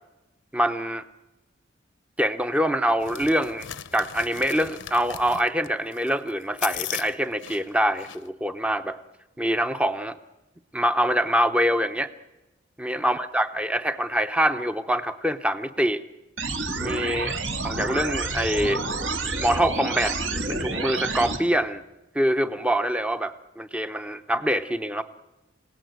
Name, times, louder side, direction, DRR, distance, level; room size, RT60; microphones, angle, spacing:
voice 1, 0.5-1.0 2.2-3.7 3.9-9.0 9.4-10.2 10.7-12.1 12.8-16.0 16.8-17.3 17.6-18.8 19.4-20.1 20.5-21.8 22.1-25.0, equal, 5° right, 10 dB, 0.8 m, -24 dB
sound 1, 3.0-8.3, left 11 dB, 70° left, 0.8 m, -37 dB
sound 2, 16.4-21.4, right 3 dB, 65° right, 2.3 m, -29 dB
27.0 x 17.5 x 9.5 m, 1.0 s
head